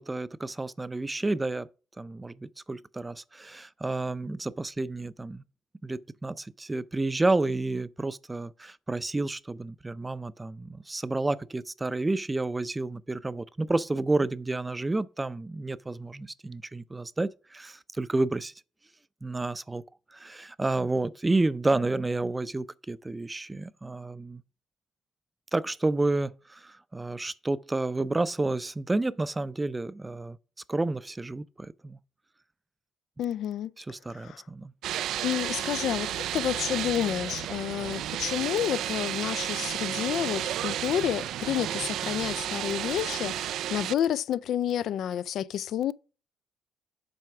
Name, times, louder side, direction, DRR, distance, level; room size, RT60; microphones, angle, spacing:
voice 1, 0.0-1.7 2.0-5.4 5.8-18.5 19.2-19.8 20.1-24.4 25.5-30.4 30.7-32.0 33.8-34.7, right 2 dB, 20° right, 0.5 m, -30 dB
voice 2, 33.2-33.7 34.1-34.4 35.2-45.9, left 10 dB, 70° left, 0.3 m, -30 dB
sound 1, 34.8-43.9, right 11 dB, 75° right, 0.3 m, -32 dB
7.7 x 4.6 x 5.9 m
supercardioid pair, 70°, 0 cm